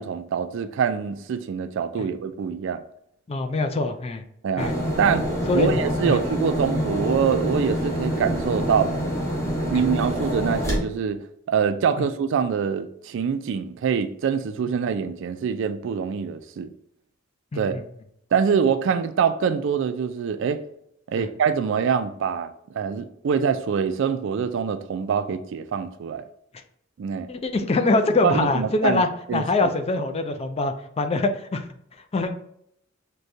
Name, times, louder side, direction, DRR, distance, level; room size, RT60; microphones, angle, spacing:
voice 1, 0.0-2.8 4.4-4.7 5.0-5.3 5.5-8.9 9.7-11.2 11.5-16.7 17.5-17.8 18.3-20.6 21.1-26.2 27.0-27.3 28.2-29.0 29.3-29.4, right 6 dB, 65° right, 0.3 m, -24 dB
voice 2, 3.3-4.2 4.6-4.7 5.5-6.2 9.7-9.8 17.5-17.8 21.2-21.3 27.3-31.6 32.1-32.4, left 3 dB, 30° left, 0.4 m, -24 dB
sound 1, 4.6-10.8, equal, 15° left, 0.9 m, -26 dB
6.2 x 2.3 x 2.6 m
head